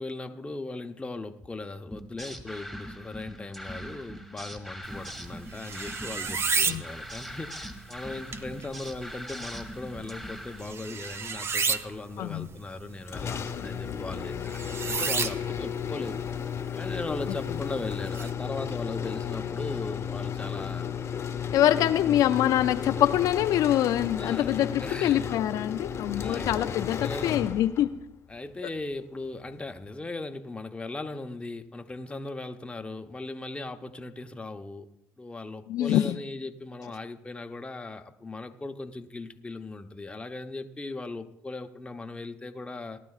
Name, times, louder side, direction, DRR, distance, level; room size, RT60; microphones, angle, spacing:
voice 1, 0.0-16.2 16.8-20.9 21.5-21.8 22.0-22.2 24.2-25.3 26.2-27.5 28.3-34.9 35.2-43.0, left 2 dB, 15° left, 6 dB, 0.9 m, -38 dB
sound 1, 1.9-10.6, equal, 5° right, 2.3 m, -41 dB
sound 2, 4.8-18.3, right 5 dB, 40° right, 0.7 m, -34 dB
voice 2, 12.2-12.5 21.5-27.9 35.7-36.2, left 12 dB, 65° left, 9 dB, 0.4 m, -25 dB
sound 3, 13.1-28.0, left 8 dB, 45° left, 1.0 m, -34 dB
18.5 x 12.0 x 2.4 m, 0.84 s
supercardioid pair, 75°, 7 cm